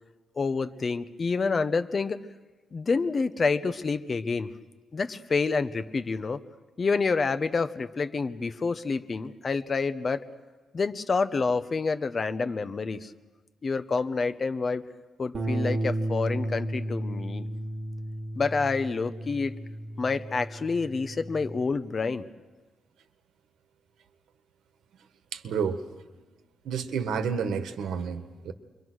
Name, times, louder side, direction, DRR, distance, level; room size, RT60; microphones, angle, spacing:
voice 1, 0.4-2.2 2.7-4.5 4.9-6.4 6.8-10.2 10.7-13.1 13.6-14.8 15.2-17.5 18.4-19.6 20.0-22.3, left 4 dB, 35° left, 11 dB, 1.0 m, -28 dB
Bass guitar, 15.3-21.6, right 1 dB, 40° right, 3.4 m, -33 dB
voice 2, 25.3-25.8 26.7-28.5, right 6 dB, 75° right, 9 dB, 1.7 m, -30 dB
29.0 x 23.5 x 6.3 m, 1.3 s
cardioid pair, 125°, 0 cm